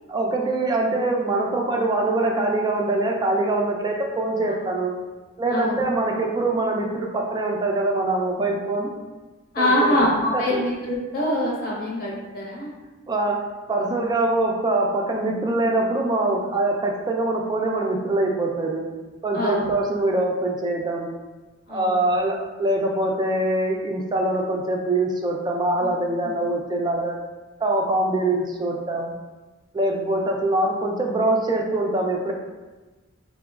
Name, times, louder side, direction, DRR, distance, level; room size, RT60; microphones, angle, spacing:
voice 1, 0.1-4.9 5.4-8.9 9.6-10.0 10.3-10.6 13.1-18.9 19.2-21.1 21.7-27.2 27.6-29.2 29.7-32.3, right 2 dB, 20° right, 0 dB, 0.4 m, -23 dB
voice 2, 5.5-5.8 9.5-12.7 13.8-14.0 19.3-19.7 21.7-22.0 25.8-25.9, left 1 dB, 50° left, -4 dB, 0.9 m, -24 dB
4.7 x 2.1 x 2.3 m, 1.2 s
head